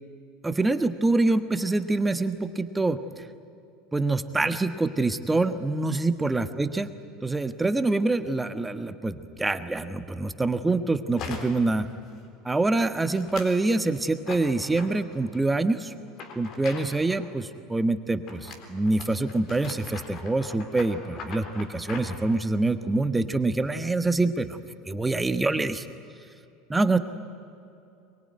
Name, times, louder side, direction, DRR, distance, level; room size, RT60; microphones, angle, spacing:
voice 1, 0.4-3.0 3.9-6.9 7.2-11.9 12.4-15.9 16.3-24.6 24.9-25.8 26.7-27.0, right 2 dB, 10° right, 10 dB, 1.4 m, -25 dB
sound 1, 11.2-11.7 12.1-12.5 13.1-13.6 14.3-15.4 16.1-17.3 18.3-22.2, left 5 dB, 50° left, 3.7 m, -41 dB
23.0 x 22.5 x 9.6 m, 2.7 s
figure-of-eight pair, 75°, 0 cm